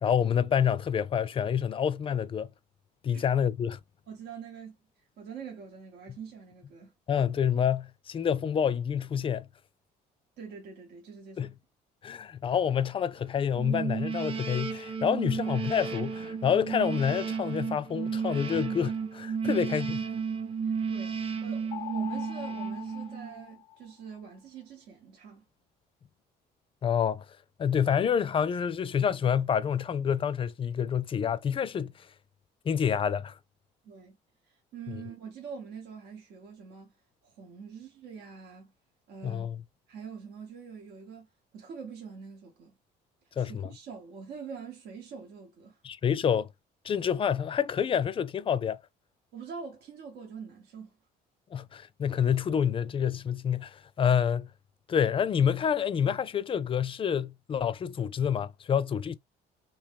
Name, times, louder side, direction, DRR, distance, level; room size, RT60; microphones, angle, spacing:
voice 1, 0.0-2.5 3.0-3.8 7.1-9.5 11.4-11.5 12.0-20.0 26.8-27.2 27.6-31.9 32.7-33.4 34.9-35.0 39.2-39.6 43.4-43.7 45.8-46.5 46.8-48.8 51.5-54.5 54.9-59.2, left 8 dB, 30° left, 0.4 m, -28 dB
voice 2, 4.1-4.8 5.2-6.9 10.4-11.5 19.4-19.7 20.6-25.4 33.8-34.2 34.5-36.9 37.2-38.7 39.1-39.5 39.9-41.3 41.5-42.8 43.4-45.8 49.3-51.0, right 6 dB, 80° right, 1.0 m, -44 dB
sound 1, 13.5-23.5, right 6 dB, 35° right, 0.7 m, -33 dB
sound 2, 21.7-24.2, left 14 dB, 85° left, 0.5 m, -42 dB
3.0 x 2.7 x 3.4 m
cardioid pair, 110°, 17 cm